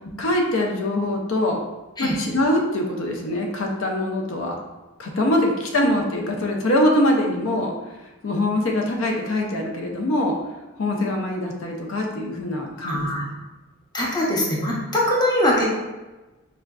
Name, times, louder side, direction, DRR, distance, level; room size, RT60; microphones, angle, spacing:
voice 1, 0.2-1.6 2.0-4.6 5.0-7.7 8.2-10.4 10.8-13.3, left 1 dB, 80° left, 1 dB, 0.5 m, -23 dB
voice 2, 12.8-13.2 13.9-15.6, left 1 dB, 20° left, -4 dB, 0.6 m, -22 dB
4.2 x 2.5 x 2.2 m, 1.1 s
head